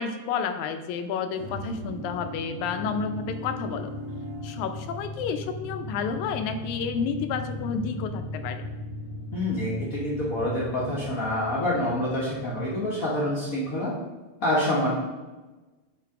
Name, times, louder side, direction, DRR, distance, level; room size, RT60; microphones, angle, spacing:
voice 1, 0.0-3.9 4.4-8.7, left 6 dB, 85° left, 8 dB, 2.0 m, -30 dB
sound 1, 1.4-13.6, left 1 dB, 65° right, 1.4 m, -38 dB
voice 2, 9.3-13.9 14.4-14.9, left 1 dB, 70° left, -6 dB, 0.8 m, -27 dB
8.5 x 3.7 x 4.8 m, 1.2 s
omnidirectional pair, 3.4 m